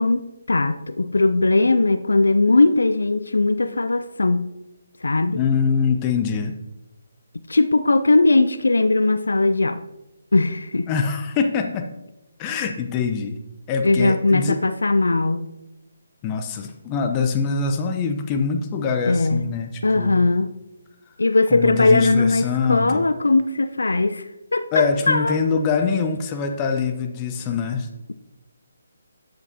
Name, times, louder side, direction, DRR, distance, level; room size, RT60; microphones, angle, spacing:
voice 1, 0.0-4.5 5.0-5.4 7.5-9.8 10.3-10.9 13.8-15.5 19.1-19.4 19.8-20.5 21.2-25.4, left 2 dB, 75° left, 11 dB, 0.5 m, -19 dB
voice 2, 5.3-6.5 10.9-11.9 12.4-13.4 13.7-14.6 16.2-20.2 21.5-23.0 24.7-27.9, left 5 dB, 20° left, 5 dB, 0.7 m, -24 dB
12.0 x 7.8 x 2.8 m, 0.95 s
figure-of-eight pair, 145°, 0 cm